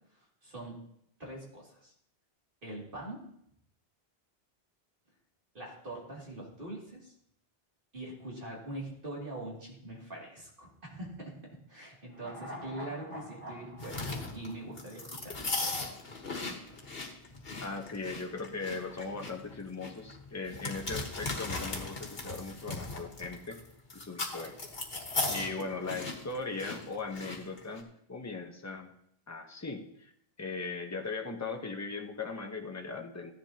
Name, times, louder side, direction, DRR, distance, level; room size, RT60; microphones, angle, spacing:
voice 1, 0.4-0.8 1.2-1.9 2.6-3.2 5.5-7.1 7.9-11.3 11.7-15.8, right 1 dB, 55° right, -3 dB, 3.0 m, -43 dB
sound 1, 12.1-15.5 15.8-15.9, left 1 dB, 20° right, 2.7 m, -47 dB
sound 2, 13.8-27.8, left 3 dB, 70° left, 1.7 m, -38 dB
voice 2, 17.6-23.6 23.9-24.6 25.3-28.9 29.3-30.1 30.4-33.3, left 3 dB, 15° left, 3 dB, 1.0 m, -39 dB
15.0 x 10.5 x 2.9 m, 0.72 s
omnidirectional pair, 1.1 m